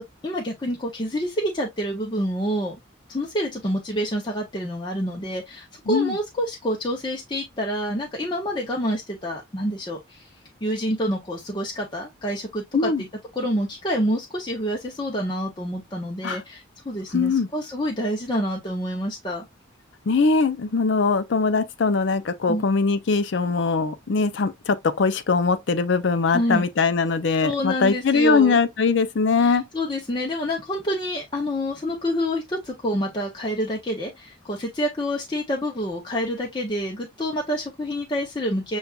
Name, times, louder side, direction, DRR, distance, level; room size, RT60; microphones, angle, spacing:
voice 1, 0.0-2.8 3.1-10.2 10.6-13.1 13.4-19.4 22.5-22.6 26.3-26.6 27.4-28.6 29.4-38.8, equal, 25° left, 0.6 m, -27 dB
voice 2, 17.1-17.5 20.1-29.6, left 4 dB, 65° left, 0.5 m, -21 dB
6.7 x 2.4 x 2.3 m
head